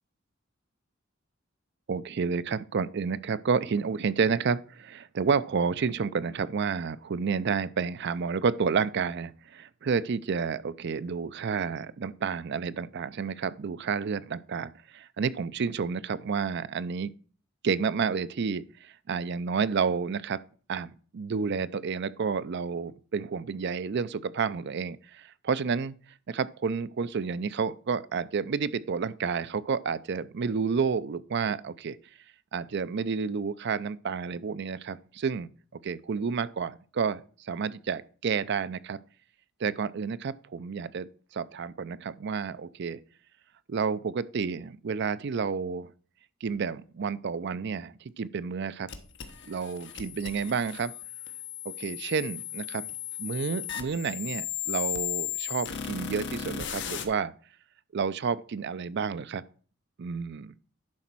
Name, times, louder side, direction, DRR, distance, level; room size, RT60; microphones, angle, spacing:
voice 1, 1.9-17.1 17.6-20.4 20.7-26.0 26.3-32.0 32.5-35.5 35.8-39.0 39.6-41.1 41.3-43.0 43.7-45.9 46.4-48.9 49.5-50.9 51.6-52.9 53.2-57.3 57.9-59.4 60.0-60.5, right 5 dB, 55° right, 0.4 m, -30 dB
sound 1, 48.9-57.0, left 10 dB, 60° left, 1.2 m, -36 dB
10.5 x 4.1 x 6.0 m
head